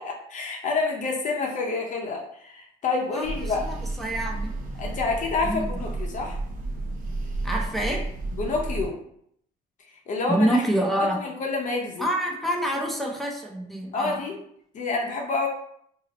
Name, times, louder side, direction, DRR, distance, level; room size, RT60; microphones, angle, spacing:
voice 1, 0.0-3.6 4.8-6.4 8.3-9.0 10.1-10.6 11.0-12.1 13.9-14.4 14.7-15.5, left 3 dB, 50° left, 0 dB, 0.6 m, -28 dB
voice 2, 3.1-4.5 5.5-5.7 7.4-8.1 10.3-11.2 12.0-14.2, right 1 dB, ahead, -1 dB, 0.5 m, -27 dB
sound 1, 3.2-8.9, right 2 dB, 50° right, 0.6 m, -32 dB
2.7 x 2.0 x 4.0 m, 0.70 s
cardioid pair, 110°, 17 cm